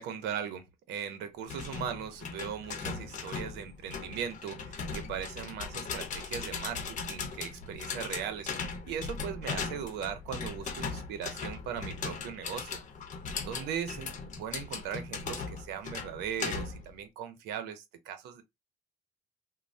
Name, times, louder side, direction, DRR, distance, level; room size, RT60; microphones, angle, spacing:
voice 1, 0.0-8.5 8.9-12.8 13.4-18.4, right 8 dB, 85° right, 0.7 m, -39 dB
sound 1, 1.5-16.9, left 5 dB, 45° left, 0.8 m, -38 dB
3.1 x 2.1 x 2.6 m
cardioid pair, 110°, 17 cm